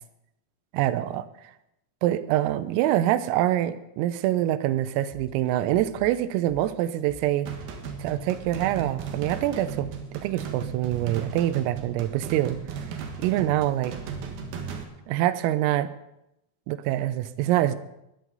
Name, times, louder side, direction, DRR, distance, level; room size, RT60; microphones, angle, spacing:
voice 1, 0.7-1.3 2.0-7.5 8.0-9.9 10.2-12.6 13.2-13.9 15.1-15.9 16.7-17.8, right 13 dB, 90° right, 14 dB, 3.4 m, -25 dB
sound 1, 5.1-10.3, left 3 dB, 25° left, 1.1 m, -49 dB
sound 2, 7.5-14.8, right 6 dB, 65° right, 2.8 m, -36 dB
20.5 x 13.0 x 4.0 m, 0.85 s
omnidirectional pair, 5.9 m